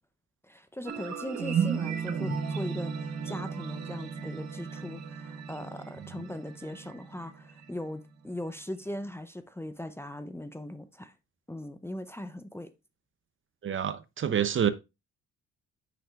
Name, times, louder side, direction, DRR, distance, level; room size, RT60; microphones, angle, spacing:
voice 1, 0.4-11.1 11.5-12.7, left 1 dB, 10° left, 0.6 m, -39 dB
sound 1, 0.9-7.9, right 6 dB, 65° right, 1.4 m, -34 dB
voice 2, 13.6-14.7, right 9 dB, 40° right, 0.7 m, -27 dB
8.5 x 5.9 x 2.4 m
cardioid pair, 90°, 30 cm